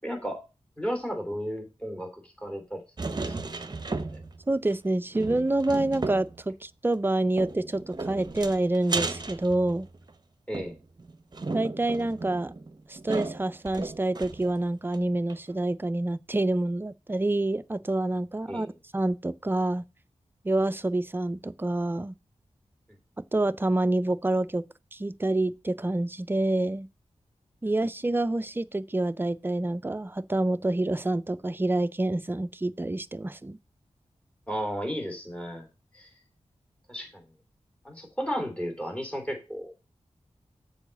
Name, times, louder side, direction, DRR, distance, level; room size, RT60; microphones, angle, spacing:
voice 1, 0.0-0.4 0.8-2.8 3.2-3.5 4.1-4.2 10.5-10.8 18.5-18.7 34.5-35.7 35.9-36.1 36.9-37.2 37.8-39.7, equal, 10° left, 3.2 m, -34 dB
sound 1, 3.0-4.4 4.7-4.8 5.1-6.4 7.4-10.1 10.5-14.6 14.9-15.0 15.3-15.4, right 3 dB, 35° right, 0.8 m, -35 dB
voice 2, 4.5-9.9 11.5-12.5 12.9-18.7 18.9-19.8 20.4-22.2 23.3-24.6 24.9-26.9 27.6-33.6, right 2 dB, 20° right, 0.5 m, -27 dB
7.2 x 4.8 x 6.9 m
wide cardioid pair, 85°, 12 cm